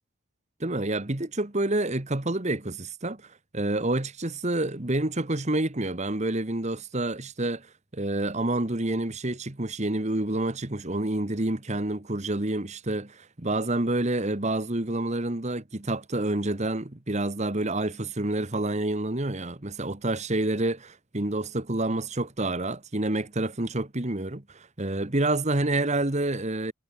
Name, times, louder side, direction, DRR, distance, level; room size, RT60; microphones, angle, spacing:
voice 1, 0.6-3.3 3.5-7.7 7.9-26.7, right 2 dB, 30° right, 1.4 m, -28 dB
head